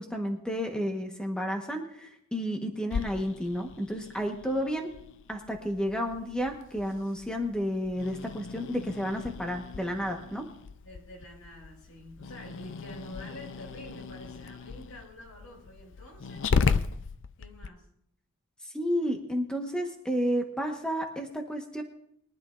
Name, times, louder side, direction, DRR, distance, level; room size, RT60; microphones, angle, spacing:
voice 1, 0.0-4.9 5.3-10.4 18.6-21.8, equal, 5° left, 2 dB, 1.2 m, -31 dB
Growling, 2.9-17.7, left 5 dB, 60° left, 0.5 m, -36 dB
voice 2, 10.8-16.5 17.4-17.8, left 1 dB, 80° left, 0 dB, 5.9 m, -48 dB
22.5 x 11.5 x 2.5 m, 0.71 s
head